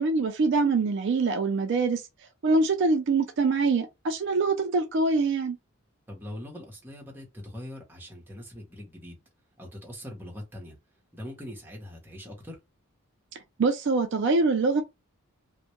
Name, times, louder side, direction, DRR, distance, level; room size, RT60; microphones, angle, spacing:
voice 1, 0.0-2.0 2.4-5.6 13.6-14.8, right 3 dB, 55° right, 0.3 m, -24 dB
voice 2, 6.1-9.2 9.6-10.8 11.1-12.6, left 1 dB, 10° right, 0.7 m, -42 dB
2.1 x 2.1 x 2.9 m
head